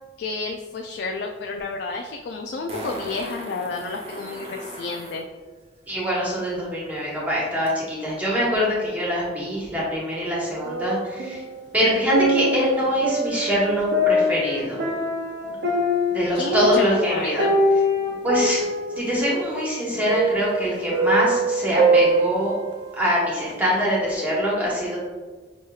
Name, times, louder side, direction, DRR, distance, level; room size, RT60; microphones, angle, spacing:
voice 1, 0.2-5.3 16.3-17.5, left 3 dB, 65° left, 2 dB, 0.3 m, -30 dB
Fart, 1.6-1.7 2.7-5.2 7.7-7.8, equal, 35° right, 0.8 m, -37 dB
voice 2, 5.9-11.4 11.7-14.8 16.1-17.4 18.2-18.7 19.0-22.5 23.0-25.0, equal, 10° right, -6 dB, 1.2 m, -24 dB
sound 1, 10.6-11.5 11.9-23.0 23.5-23.6, right 1 dB, 75° right, 0.6 m, -23 dB
6.2 x 2.8 x 2.3 m, 1.4 s
head